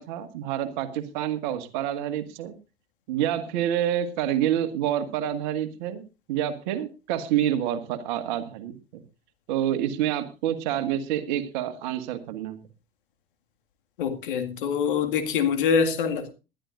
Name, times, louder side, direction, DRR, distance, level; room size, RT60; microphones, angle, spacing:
voice 1, 0.0-2.5 3.1-6.0 6.3-9.0 9.5-12.6, right 11 dB, 50° right, 1.9 m, -28 dB
voice 2, 14.0-16.3, left 6 dB, 60° left, 2.2 m, -24 dB
20.5 x 12.0 x 2.6 m
figure-of-eight pair, 80°, 29 cm